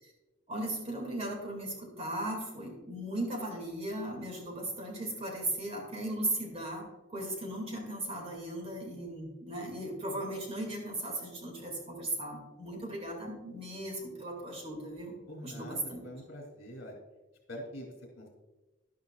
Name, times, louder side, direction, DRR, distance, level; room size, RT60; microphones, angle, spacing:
voice 1, 0.5-6.8 7.1-15.2 15.4-16.0, right 1 dB, 30° right, 1 dB, 2.3 m, -37 dB
voice 2, 15.3-17.0 17.5-18.3, equal, 65° left, 1 dB, 2.9 m, -45 dB
12.0 x 11.0 x 2.4 m, 1.1 s
head